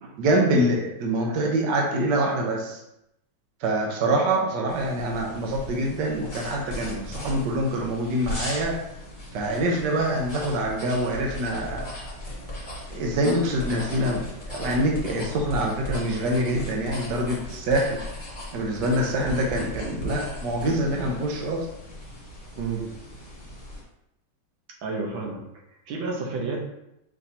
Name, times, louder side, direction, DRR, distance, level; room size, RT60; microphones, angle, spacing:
voice 1, 0.2-2.8 3.6-8.7 9.3-11.9 12.9-14.2 14.5-18.0 18.5-21.7, right 1 dB, 70° right, 0 dB, 1.3 m, -25 dB
sound 1, 4.7-23.8, left 1 dB, 25° left, 1.4 m, -37 dB
voice 2, 24.8-25.4 25.9-26.7, right 4 dB, 90° right, -1 dB, 1.8 m, -30 dB
5.8 x 3.3 x 2.7 m, 0.82 s
omnidirectional pair, 2.1 m